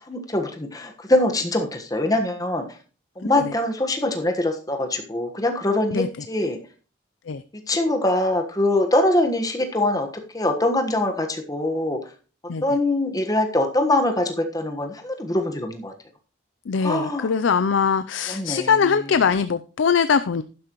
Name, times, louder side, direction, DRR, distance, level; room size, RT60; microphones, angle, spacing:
voice 1, 0.1-2.6 3.2-6.6 7.5-10.1 10.3-12.0 12.6-15.9 16.8-17.3 18.3-18.8, left 1 dB, 20° left, 4 dB, 1.3 m, -23 dB
voice 2, 16.7-20.4, left 6 dB, 80° left, 12 dB, 0.5 m, -22 dB
11.5 x 10.5 x 3.0 m, 0.37 s
head